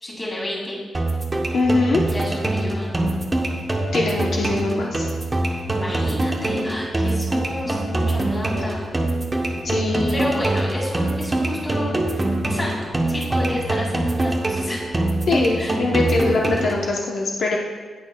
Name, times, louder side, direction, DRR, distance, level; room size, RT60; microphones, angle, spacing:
voice 1, 0.0-0.8 2.1-3.0 5.7-9.0 10.1-12.0 12.5-14.9 15.3-15.8, left 1 dB, 10° left, -4 dB, 2.2 m, -30 dB
sound 1, 0.9-16.9, right 1 dB, 15° right, 0.8 m, -24 dB
voice 2, 1.5-2.0 3.9-5.1 9.6-10.2 15.3-17.6, left 3 dB, 55° left, -2 dB, 0.8 m, -22 dB
17.5 x 6.0 x 2.2 m, 1.4 s
wide cardioid pair, 175°, 0 cm